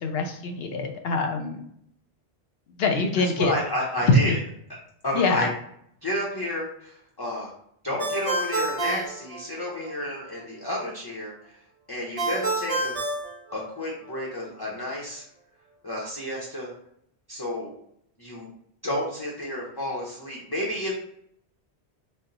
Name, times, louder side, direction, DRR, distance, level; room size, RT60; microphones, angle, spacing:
voice 1, 0.0-1.6 2.8-3.5 4.1-4.2 5.1-5.5, left 3 dB, 70° left, 4 dB, 0.8 m, -23 dB
voice 2, 3.4-4.4 5.0-5.5 6.0-7.5 7.8-11.5 11.9-13.0 13.5-15.2 15.8-16.7 17.3-17.7 18.2-18.5 18.8-20.9, left 1 dB, 25° left, -4 dB, 0.6 m, -31 dB
Ringtone, 8.0-9.9 12.2-14.1, right 2 dB, 40° right, 0.6 m, -29 dB
4.2 x 2.0 x 3.8 m, 0.71 s
omnidirectional pair, 1.1 m